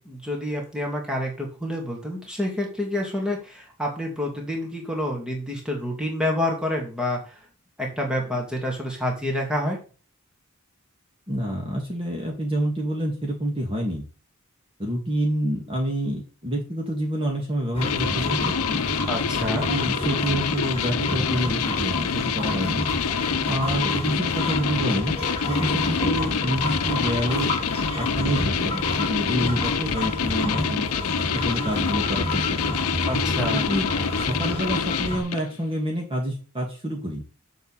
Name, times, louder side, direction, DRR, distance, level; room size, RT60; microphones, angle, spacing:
voice 1, 0.0-7.4 7.8-9.8 19.1-19.7 33.1-33.7, left 1 dB, 5° right, 0 dB, 2.6 m, -28 dB
voice 2, 11.3-14.0 14.8-18.8 19.5-22.8 23.5-25.2 25.5-27.5 28.0-30.9 31.3-32.9 33.5-37.2, equal, 25° right, 0 dB, 2.2 m, -28 dB
sound 1, 17.7-35.2, left 1 dB, 25° left, 2.4 m, -29 dB
sound 2, 17.8-35.5, left 7 dB, 85° left, 0.6 m, -27 dB
7.6 x 5.4 x 7.5 m, 0.36 s
head